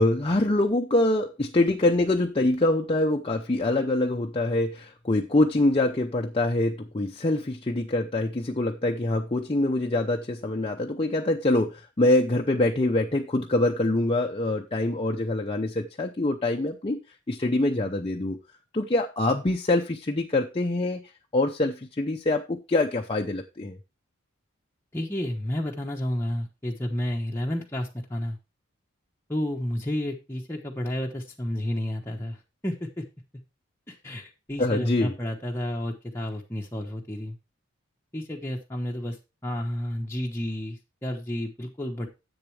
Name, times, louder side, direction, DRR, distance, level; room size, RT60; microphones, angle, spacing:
voice 1, 0.0-17.0 17.3-18.4 18.7-21.0 21.3-23.8 34.6-35.1, left 2 dB, 25° left, 2 dB, 0.7 m, -24 dB
voice 2, 24.9-28.4 29.3-33.0 33.9-37.4 38.1-39.2 39.4-42.1, left 1 dB, 10° left, -1 dB, 1.0 m, -31 dB
10.5 x 8.0 x 3.2 m, 0.27 s
head